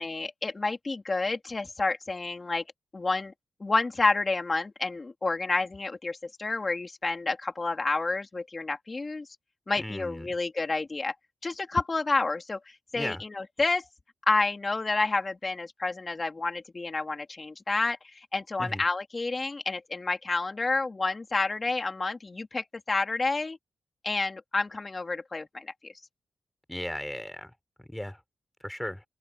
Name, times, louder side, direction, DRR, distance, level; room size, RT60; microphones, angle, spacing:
voice 1, 0.0-2.6 2.9-3.3 3.6-9.3 9.7-11.1 11.4-13.9 14.3-23.6 24.0-25.9, left 3 dB, 35° left, 2.9 m, -29 dB
voice 2, 9.8-10.3 12.9-13.2 18.6-18.8 26.7-27.5 27.9-28.2 28.6-29.0, left 1 dB, 5° left, 4.6 m, -36 dB
open air
cardioid pair, 75°, 0 cm